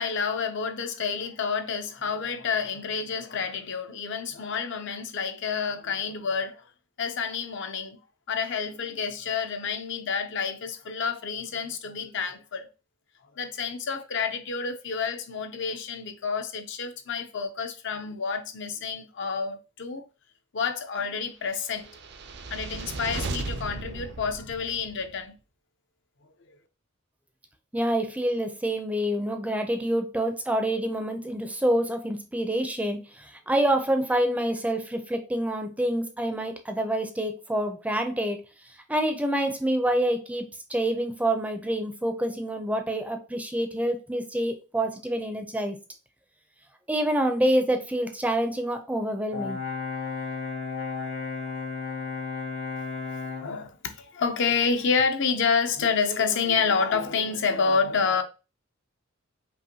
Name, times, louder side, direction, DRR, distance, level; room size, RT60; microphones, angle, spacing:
voice 1, 0.0-6.7 7.0-8.0 8.3-12.7 13.4-20.0 20.5-21.9 22.5-25.3 53.4-58.2, left 5 dB, 60° left, 0.6 m, -29 dB
sound 1, 21.7-25.1, right 3 dB, 55° right, 0.5 m, -36 dB
voice 2, 27.7-38.4 38.9-45.8 46.9-49.6, right 1 dB, 5° right, 0.5 m, -27 dB
Brass instrument, 49.3-53.5, left 5 dB, 85° left, 2.5 m, -33 dB
5.5 x 2.5 x 2.8 m
head